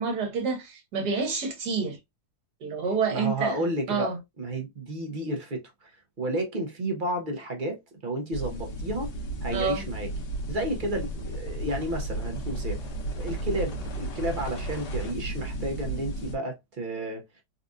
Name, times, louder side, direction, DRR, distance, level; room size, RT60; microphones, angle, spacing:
voice 1, 0.0-2.0 2.6-4.2 9.5-9.9, right 5 dB, 75° right, 1.6 m, -28 dB
voice 2, 3.1-4.1 4.4-5.9 6.2-9.1 9.4-10.1 10.5-12.8 13.1-17.2, right 1 dB, 45° right, 0.7 m, -31 dB
sound 1, 8.3-16.4, right 1 dB, 85° left, 1.7 m, -33 dB
4.0 x 2.4 x 2.5 m
omnidirectional pair, 1.7 m